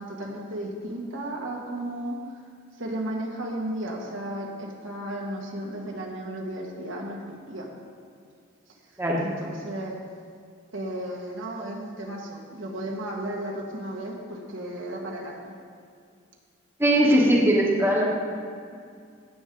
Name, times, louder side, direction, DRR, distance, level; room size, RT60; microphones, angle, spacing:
voice 1, 0.0-2.2 2.8-7.2 7.5-7.7 9.2-9.9 10.7-15.5, right 1 dB, 70° right, -1 dB, 1.5 m, -34 dB
voice 2, 16.8-18.1, right 1 dB, 10° right, -3 dB, 1.2 m, -20 dB
16.5 x 7.1 x 3.8 m, 2.3 s
head